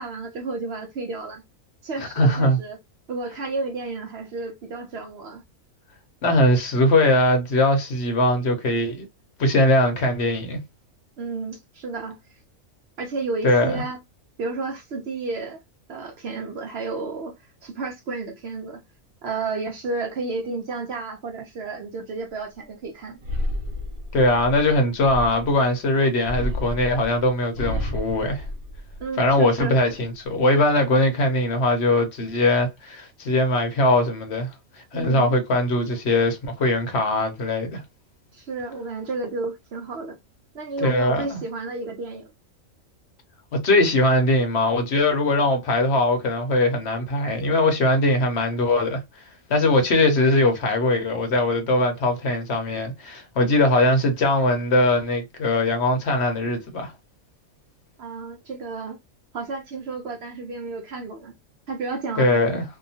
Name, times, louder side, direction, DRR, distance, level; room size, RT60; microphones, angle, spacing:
voice 1, 0.0-1.4 1.8-2.8 3.1-5.4 11.2-12.4 13.0-14.0 14.4-15.6 15.9-18.8 19.2-23.2 29.0-29.8 34.9-35.3 38.3-40.2 40.5-42.3 58.0-59.0 59.3-61.3 61.7-62.6, right 3 dB, 65° right, 0.7 m, -32 dB
voice 2, 2.2-2.6 6.2-9.1 9.4-10.6 13.4-13.8 24.1-28.4 29.2-37.8 40.8-41.4 43.6-49.2 49.5-56.9 62.2-62.6, left 1 dB, 60° left, 0.9 m, -21 dB
sound 1, 23.2-25.6 26.2-29.3 29.7-30.3, left 1 dB, 90° right, 1.1 m, -31 dB
2.8 x 2.2 x 2.7 m
omnidirectional pair, 1.4 m